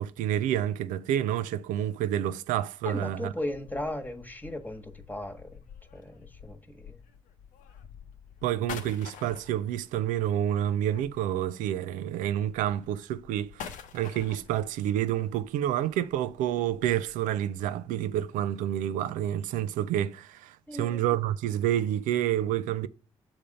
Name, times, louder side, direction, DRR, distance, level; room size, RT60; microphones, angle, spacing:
voice 1, 0.0-3.3 8.4-22.9, right 11 dB, 70° right, 0.5 m, -29 dB
voice 2, 2.8-5.6 5.9-7.0 20.7-21.0, left 1 dB, 10° left, 1.4 m, -37 dB
sound 1, 3.1-11.6 11.9-17.2, left 7 dB, 70° left, 0.8 m, -48 dB
7.0 x 3.7 x 5.2 m
hypercardioid pair, 45°, 14 cm